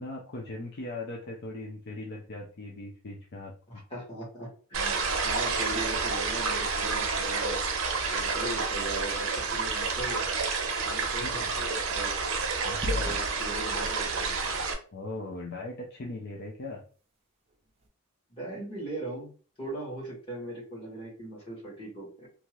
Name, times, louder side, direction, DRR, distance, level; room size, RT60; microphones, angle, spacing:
voice 1, 0.0-3.8 11.2-11.5 12.6-13.2 14.9-16.8, left 2 dB, 50° left, -1 dB, 0.5 m, -39 dB
voice 2, 3.7-7.6 8.1-10.3 10.8-12.1 13.0-14.5 18.3-19.3 19.6-22.3, right 1 dB, 25° left, -4 dB, 1.3 m, -39 dB
sound 1, 4.7-14.7, right 4 dB, 70° right, 0.6 m, -29 dB
sound 2, 12.8-13.8, left 1 dB, 30° right, 0.5 m, -33 dB
2.8 x 2.4 x 3.0 m, 0.39 s
head